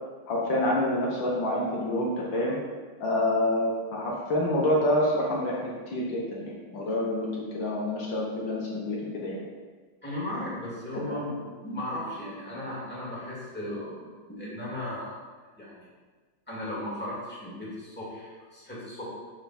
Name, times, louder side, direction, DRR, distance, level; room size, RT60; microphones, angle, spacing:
voice 1, 0.3-2.6 3.0-7.3 7.5-9.4 11.1-11.2, left 1 dB, 70° left, -3 dB, 2.0 m, -27 dB
voice 2, 10.0-15.2 15.6-15.9 16.5-19.0, left 1 dB, 5° left, -7 dB, 2.2 m, -36 dB
7.1 x 5.8 x 4.3 m, 1.4 s
omnidirectional pair, 2.1 m